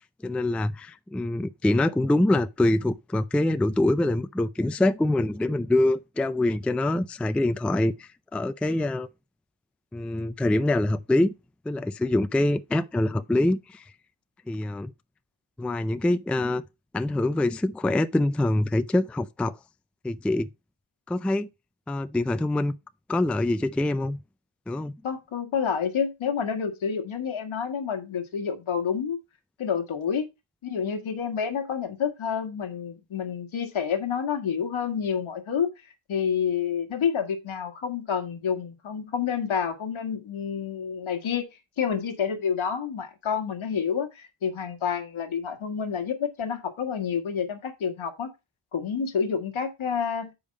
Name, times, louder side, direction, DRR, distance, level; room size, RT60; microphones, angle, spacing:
voice 1, 0.2-9.1 9.9-11.3 11.7-13.8 14.5-14.9 15.6-16.6 16.9-19.6 20.0-20.5 21.1-21.5 21.9-22.7 23.1-24.2 24.7-24.9, left 1 dB, 5° left, 0.3 m, -25 dB
voice 2, 25.0-29.2 29.6-30.3 30.6-41.5 41.8-48.3 48.7-50.3, left 7 dB, 75° left, 1.6 m, -29 dB
7.1 x 5.1 x 5.2 m
cardioid pair, 95°, 48 cm